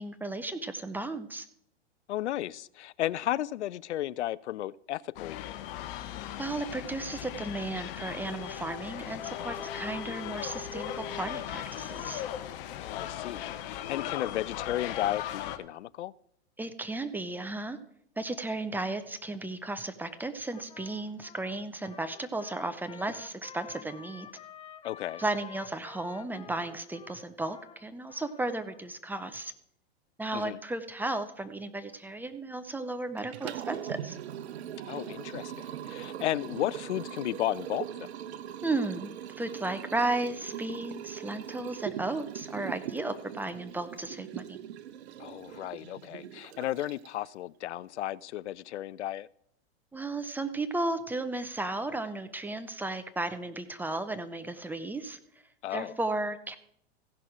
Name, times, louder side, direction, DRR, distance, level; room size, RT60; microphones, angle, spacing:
voice 1, 0.0-1.5 6.4-12.2 16.6-17.8 18.2-24.3 25.2-29.5 30.2-34.2 38.6-39.1 39.4-44.6 49.9-55.2 55.7-56.6, right 2 dB, 5° right, 0.4 m, -34 dB
voice 2, 2.1-5.5 12.8-16.1 24.8-25.2 30.3-30.6 34.9-38.1 45.2-49.3 55.6-55.9, left 13 dB, 80° left, 0.5 m, -34 dB
sound 1, 5.2-15.6, left 11 dB, 50° left, 1.0 m, -38 dB
Trumpet, 20.5-28.8, left 8 dB, 15° left, 0.8 m, -51 dB
Liquid, 33.2-47.3, right 10 dB, 70° right, 0.8 m, -41 dB
15.5 x 5.9 x 4.9 m
hypercardioid pair, 115°, 34 cm